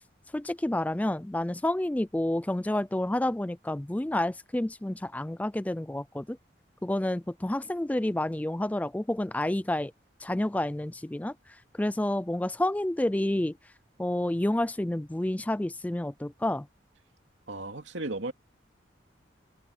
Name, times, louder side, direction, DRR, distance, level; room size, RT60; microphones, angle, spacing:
voice 1, 0.3-6.4 6.8-9.9 10.2-11.3 11.8-13.6 14.0-16.7, left 1 dB, 10° left, 0.3 m, -29 dB
voice 2, 17.5-18.3, right 2 dB, 85° right, 2.5 m, -35 dB
head